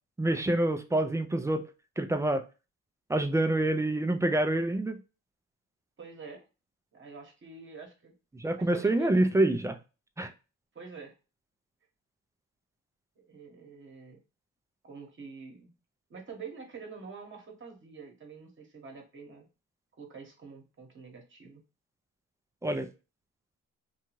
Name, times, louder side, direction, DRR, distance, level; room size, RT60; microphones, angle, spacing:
voice 1, 0.2-1.7 2.0-2.4 3.1-5.0 8.3-9.8 10.2-10.3 22.6-22.9, right 1 dB, 10° right, 0.3 m, -27 dB
voice 2, 6.0-6.4 6.9-8.1 8.6-9.3 10.7-11.1 13.2-14.2 14.8-15.7 16.1-19.5 20.0-21.6, right 5 dB, 40° right, 1.0 m, -46 dB
2.6 x 2.3 x 3.0 m
cardioid pair, 90°, 30 cm